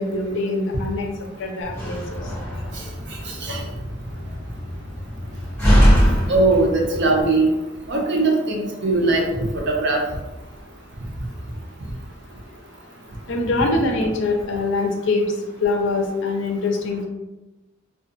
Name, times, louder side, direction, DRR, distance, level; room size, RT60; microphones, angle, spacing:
voice 1, 0.0-2.3 7.1-7.2 13.2-17.0, left 2 dB, 65° left, 3 dB, 0.5 m, -24 dB
Slam, 1.6-7.2, equal, 10° left, 0.8 m, -22 dB
voice 2, 6.3-7.5 7.9-9.3 9.5-10.0, right 2 dB, 60° right, 0 dB, 0.6 m, -20 dB
2.4 x 2.3 x 2.5 m, 1.0 s
head